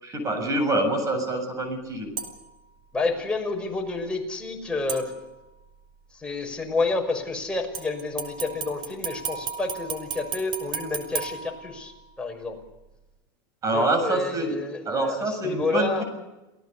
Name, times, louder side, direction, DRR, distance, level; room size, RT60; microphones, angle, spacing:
voice 1, 0.0-2.1 13.6-14.6 14.9-15.9, right 1 dB, 30° right, 7 dB, 7.3 m, -25 dB
sound 1, 2.2-2.6 4.9-5.6 7.7-12.1 12.6-12.7, right 7 dB, 45° right, 4.8 m, -35 dB
voice 2, 2.9-5.1 6.2-11.9 12.2-12.6 13.7-16.0, left 3 dB, 10° left, 1 dB, 6.0 m, -29 dB
29.0 x 17.5 x 7.1 m, 1.0 s
supercardioid pair, 120°, 12 cm